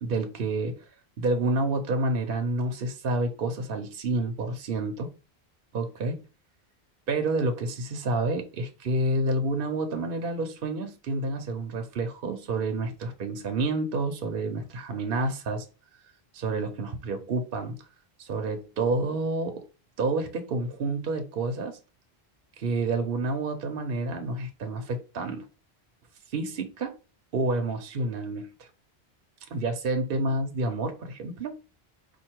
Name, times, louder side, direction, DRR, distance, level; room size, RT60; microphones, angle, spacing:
voice 1, 0.0-0.8 1.2-5.1 5.7-6.2 7.1-15.7 16.3-17.9 18.2-19.6 20.0-21.8 22.6-25.5 26.3-26.9 27.3-28.7 29.5-31.6, right 2 dB, 65° right, 0.9 m, -29 dB
4.5 x 2.6 x 4.5 m
omnidirectional pair, 1.1 m